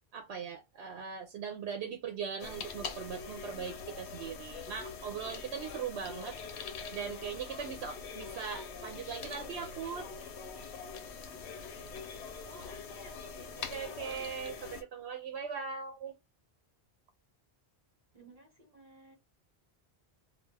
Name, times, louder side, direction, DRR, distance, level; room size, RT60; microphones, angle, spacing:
voice 1, 0.1-6.4 6.9-10.1 13.7-16.1, right 6 dB, 80° right, 0.8 m, -40 dB
sound 1, 2.4-14.8, left 5 dB, 85° left, 0.9 m, -44 dB
voice 2, 12.5-14.3 18.1-19.1, right 1 dB, 35° right, 1.0 m, -56 dB
2.3 x 2.2 x 3.2 m
omnidirectional pair, 1.1 m